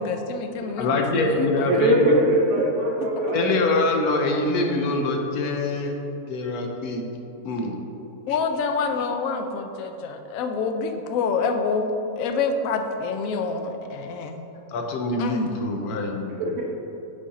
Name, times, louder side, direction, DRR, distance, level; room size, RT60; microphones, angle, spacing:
voice 1, 0.0-1.8 3.2-3.3 8.3-11.9 12.2-14.5 15.2-15.5, left 4 dB, 70° left, 6 dB, 0.9 m, -27 dB
voice 2, 0.8-2.2 3.3-6.0 6.2-7.0 7.4-7.7 14.7-16.4, left 2 dB, 90° left, 2 dB, 1.2 m, -24 dB
voice 3, 1.6-3.5 16.3-16.6, right 1 dB, 65° right, -3 dB, 0.9 m, -21 dB
5.5 x 5.0 x 4.0 m, 3.0 s
omnidirectional pair, 1.6 m